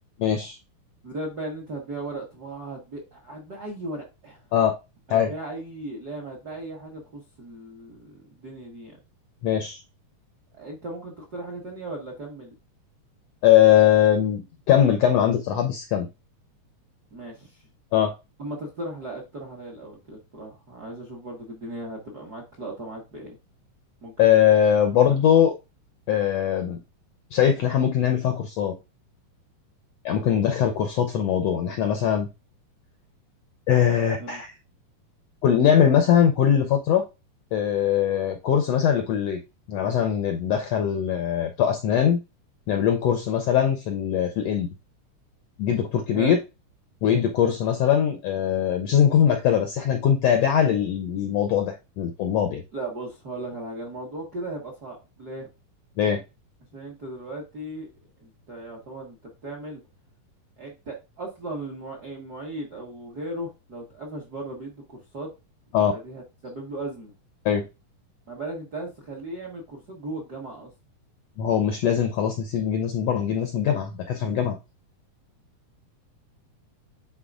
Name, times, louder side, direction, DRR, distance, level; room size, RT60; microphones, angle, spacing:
voice 1, 0.2-0.6 4.5-4.7 5.1-5.3 9.4-9.8 13.4-16.1 17.9-18.1 24.2-25.5 26.1-26.8 27.3-28.7 30.0-32.3 33.7-34.5 35.4-37.0 37.5-39.4 39.7-42.2 42.7-44.7 45.6-46.4 47.0-52.6 56.0-56.2 65.7-65.9 67.4-67.6 71.4-74.5, left 9 dB, 75° left, 5 dB, 1.5 m, -21 dB
voice 2, 1.0-4.4 5.1-9.0 10.5-12.5 17.1-17.6 18.4-23.4 24.0-24.4 25.1-25.2 34.2-34.4 46.1-46.4 52.7-55.5 56.7-57.9 58.2-59.8 60.6-65.3 65.9-67.1 68.3-70.7, right 2 dB, 45° right, 0 dB, 1.3 m, -37 dB
9.5 x 4.0 x 2.5 m, 0.26 s
omnidirectional pair, 3.8 m